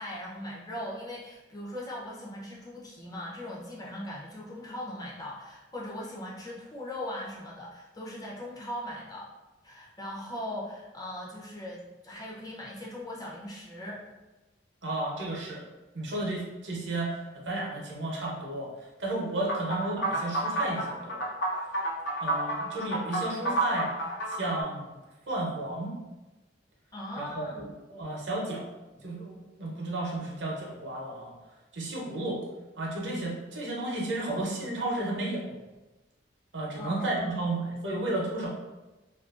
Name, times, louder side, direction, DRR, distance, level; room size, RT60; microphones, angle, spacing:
voice 1, 0.0-9.3 9.6-14.0 26.9-27.6 36.8-37.6, left 1 dB, 20° left, -4 dB, 0.5 m, -39 dB
voice 2, 14.8-15.6 15.9-21.2 22.2-23.9 24.3-25.0 25.3-25.9 27.2-28.7 29.0-31.4 31.7-32.4 32.8-35.6 36.5-38.5, right 2 dB, 70° right, -2 dB, 0.6 m, -33 dB
sound 1, 19.5-24.6, right 1 dB, 75° left, 0.5 m, -30 dB
2.5 x 2.3 x 2.3 m, 1.1 s
head